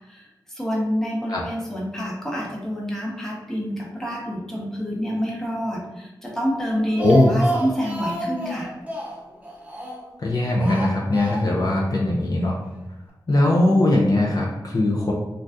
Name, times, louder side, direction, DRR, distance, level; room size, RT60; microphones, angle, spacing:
voice 1, 0.1-8.7, equal, 5° left, -4 dB, 0.9 m, -28 dB
Speech, 6.7-10.2 10.6-11.7 12.0-12.1 12.4-12.5, right 1 dB, 20° right, 0.7 m, -30 dB
voice 2, 7.0-7.3 10.2-12.6 13.3-15.1, left 1 dB, 50° left, -3 dB, 0.5 m, -20 dB
2.6 x 2.3 x 3.4 m, 1.0 s
wide cardioid pair, 65°, 8 cm